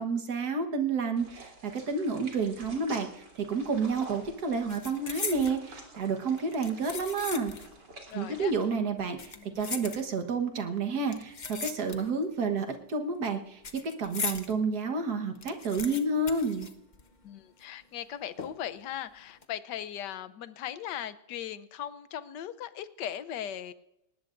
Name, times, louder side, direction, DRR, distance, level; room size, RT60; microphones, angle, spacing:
voice 1, 0.0-7.5 8.1-13.6 14.0-16.7, right 4 dB, 65° right, 5 dB, 1.9 m, -30 dB
sound 1, 1.2-8.7, right 3 dB, 85° right, 4.0 m, -49 dB
sound 2, 3.6-3.9 4.2-5.6 6.4-7.8 8.1-8.2 9.0-10.4 11.1-12.3 12.6-14.5 14.9-15.0 15.2-17.3 17.6-17.7 18.4-18.8 19.2-19.4, left 5 dB, 40° left, 0.7 m, -39 dB
voice 2, 8.1-8.5 9.3-9.7 17.2-23.7, left 10 dB, 80° left, 13 dB, 1.4 m, -39 dB
20.0 x 19.0 x 2.6 m, 0.84 s
omnidirectional pair, 1.8 m